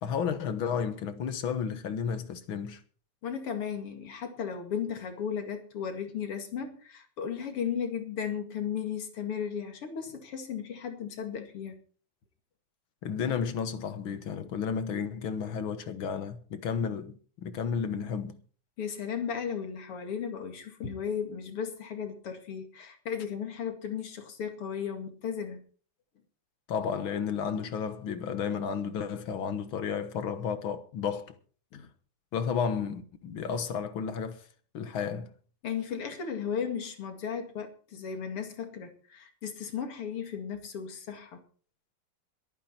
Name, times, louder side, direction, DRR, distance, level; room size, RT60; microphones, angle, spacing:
voice 1, 0.0-2.8 13.0-18.4 26.7-31.4 32.3-34.4 34.7-35.3, left 6 dB, 65° left, 2.1 m, -32 dB
voice 2, 3.2-11.8 18.8-25.6 31.7-31.9 35.6-41.4, left 7 dB, 85° left, 3.1 m, -35 dB
21.5 x 9.5 x 4.4 m
omnidirectional pair, 2.4 m